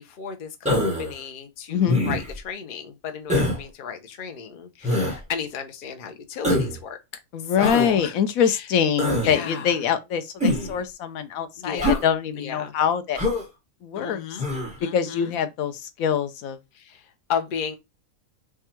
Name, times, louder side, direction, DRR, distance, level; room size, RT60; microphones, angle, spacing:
voice 1, 0.0-7.0 7.6-8.7 9.2-9.8 11.6-12.0 12.3-12.7 13.9-14.5 14.8-15.3 16.7-17.7, left 7 dB, 50° left, 0.7 m, -34 dB
Human voice, 0.6-1.1 1.9-2.4 3.3-3.6 4.8-5.2 6.4-6.8 7.6-7.9 9.0-9.3 10.4-10.8 11.8-12.0 13.1-13.4 14.4-14.7, left 1 dB, 5° right, 1.3 m, -23 dB
voice 2, 1.7-2.0 7.3-13.2 13.8-14.2 14.9-16.6, left 8 dB, 75° left, 1.0 m, -24 dB
3.6 x 2.3 x 4.2 m
omnidirectional pair, 1.5 m